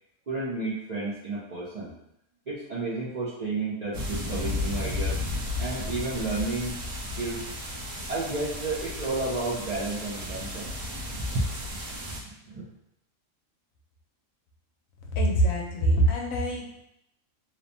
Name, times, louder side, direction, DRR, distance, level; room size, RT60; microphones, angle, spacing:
voice 1, 0.3-1.9 2.5-5.2 5.6-6.8 7.1-7.4 8.1-10.7 11.2-11.8 12.1-12.6, right 3 dB, 55° right, -9 dB, 0.4 m, -32 dB
sound 1, 3.9-12.2, left 2 dB, 85° right, 1.2 m, -34 dB
voice 2, 15.1-16.8, right 1 dB, 80° left, 0 dB, 1.0 m, -24 dB
3.0 x 2.1 x 2.5 m, 0.77 s
omnidirectional pair, 1.4 m